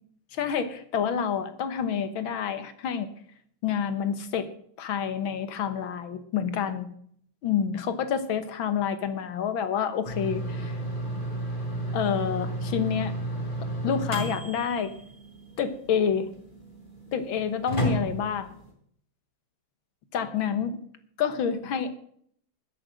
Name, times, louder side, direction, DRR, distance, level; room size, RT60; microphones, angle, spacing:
voice 1, 0.3-3.1 3.6-4.5 4.8-6.9 7.4-10.8 11.9-13.1 13.8-14.9 15.6-16.3 17.1-18.6 20.1-20.8 21.2-21.9, left 7 dB, 70° left, 11 dB, 1.9 m, -28 dB
sound 1, 10.0-18.7, right 1 dB, 20° left, 4.3 m, -33 dB
12.5 x 7.9 x 7.5 m, 0.64 s
omnidirectional pair, 2.4 m